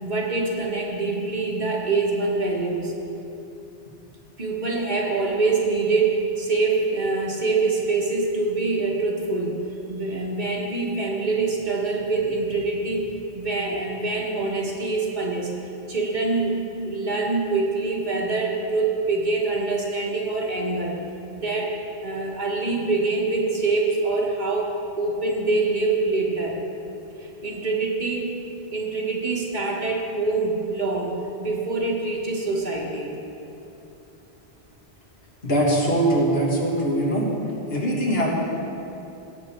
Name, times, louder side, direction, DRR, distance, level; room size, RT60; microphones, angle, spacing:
voice 1, 0.0-2.9 4.4-9.6 9.9-15.5 15.9-16.6 16.8-21.0 21.3-21.7 22.0-26.6 27.2-28.3 28.7-33.2, right 3 dB, 50° right, -1 dB, 1.4 m, -25 dB
voice 2, 35.4-37.3 37.7-38.3, right 1 dB, 70° left, -3 dB, 2.1 m, -22 dB
17.5 x 7.0 x 4.4 m, 2.8 s
omnidirectional pair, 1.0 m